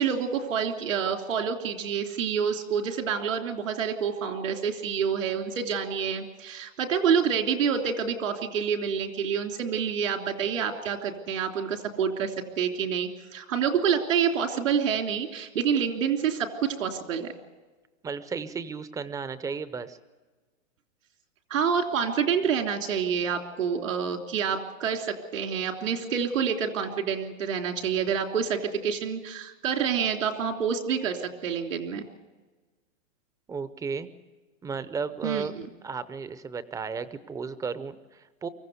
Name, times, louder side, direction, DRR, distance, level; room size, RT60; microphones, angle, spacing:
voice 1, 0.0-17.3 21.5-32.0 35.2-35.4, right 7 dB, 80° right, 4 dB, 3.3 m, -27 dB
voice 2, 18.0-20.0 33.5-34.1 34.6-35.5 35.8-38.5, right 5 dB, 10° right, 14 dB, 0.6 m, -34 dB
24.0 x 15.0 x 8.1 m, 1.3 s
hypercardioid pair, 140°, 38 cm